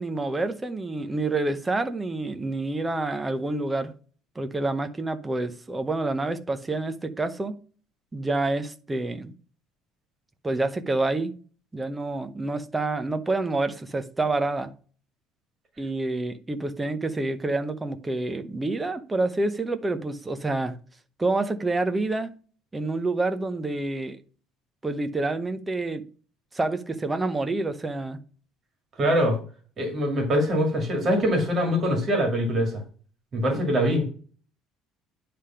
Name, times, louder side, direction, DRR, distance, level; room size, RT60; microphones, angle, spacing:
voice 1, 0.0-3.9 4.4-7.5 8.1-9.3 10.4-11.3 11.7-14.7 15.8-20.8 21.2-22.3 22.7-24.2 24.8-26.0 26.5-28.2 33.5-33.6, right 2 dB, 10° right, 0.7 m, -28 dB
voice 2, 29.0-29.4 29.8-32.8 33.3-34.1, equal, 25° right, 2.1 m, -23 dB
9.5 x 3.4 x 5.7 m
cardioid pair, 170°, 0 cm